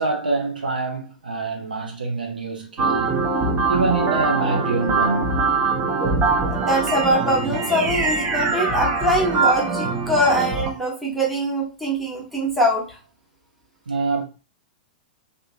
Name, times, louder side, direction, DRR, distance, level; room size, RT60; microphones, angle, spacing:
voice 1, 0.0-3.2 3.7-5.5 13.9-14.2, right 3 dB, 75° right, 0.7 m, -25 dB
sound 1, 2.8-10.7, right 4 dB, 25° right, 0.6 m, -22 dB
voice 2, 6.5-13.0, equal, ahead, 1.0 m, -22 dB
2.8 x 2.4 x 2.5 m
figure-of-eight pair, 100°, 5 cm